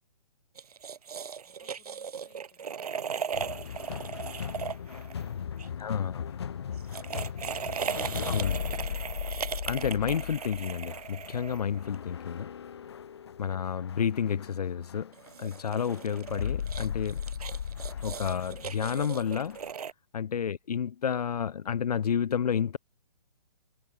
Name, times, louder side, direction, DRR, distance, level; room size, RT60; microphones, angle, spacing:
sound 1, 0.5-5.7 6.7-11.9 15.1-19.9, right 7 dB, 70° right, 1.0 m, -38 dB
voice 1, 1.4-9.1 20.3-20.5, left 21 dB, 15° left, 6.5 m, -67 dB
sound 2, 3.3-19.7, left 8 dB, 40° left, 1.0 m, -38 dB
voice 2, 5.8-6.2 8.2-8.6 9.7-12.5 13.4-15.1 15.4-17.2 18.0-19.6 20.1-22.8, left 7 dB, 75° left, 0.7 m, -30 dB
hypercardioid pair, 175°, 20 cm